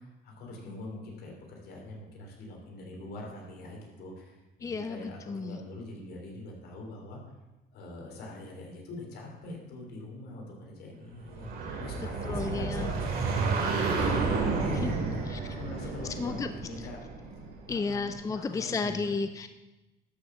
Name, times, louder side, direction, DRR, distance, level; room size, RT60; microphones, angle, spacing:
voice 1, 0.0-7.2 7.7-11.5 11.8-14.2 14.6-17.0 17.7-19.2, left 2 dB, 70° left, 0 dB, 3.5 m, -43 dB
voice 2, 4.6-5.0 5.3-5.6 12.2-12.9 14.8-14.9 15.3-15.4 16.2-16.5 17.7-19.5, left 4 dB, 20° left, 9 dB, 0.5 m, -32 dB
sound 1, 11.3-17.9, right 4 dB, 65° right, 2.7 m, -31 dB
12.5 x 6.2 x 7.1 m, 1.1 s
cardioid pair, 110°, 17 cm